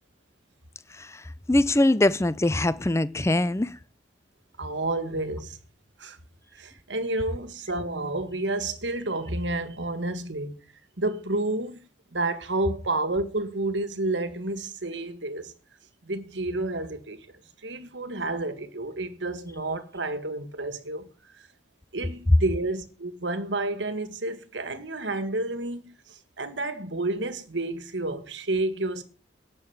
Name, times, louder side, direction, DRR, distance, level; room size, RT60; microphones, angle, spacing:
voice 1, 0.9-3.8, left 1 dB, 15° left, 0.5 m, -23 dB
voice 2, 4.6-5.6 6.0-6.2 6.5-10.5 11.0-15.5 16.0-17.3 17.6-21.1 21.9-29.0, right 2 dB, 80° right, 1.8 m, -30 dB
10.5 x 6.9 x 8.8 m
head